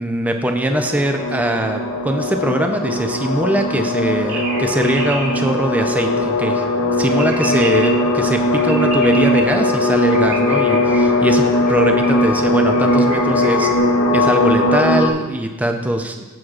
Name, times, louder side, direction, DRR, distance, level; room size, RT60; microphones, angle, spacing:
voice 1, 0.0-6.6 6.9-13.7 14.1-16.2, right 1 dB, 5° right, 4 dB, 0.5 m, -21 dB
sound 1, 0.7-15.1, left 1 dB, 85° left, 0.9 m, -18 dB
sound 2, 4.3-5.3 7.1-7.9 8.6-9.4 10.1-11.0 11.6-12.2 12.7-13.2 13.4-13.8, right 3 dB, 65° right, 2.6 m, -29 dB
15.0 x 6.3 x 2.4 m, 1.2 s
head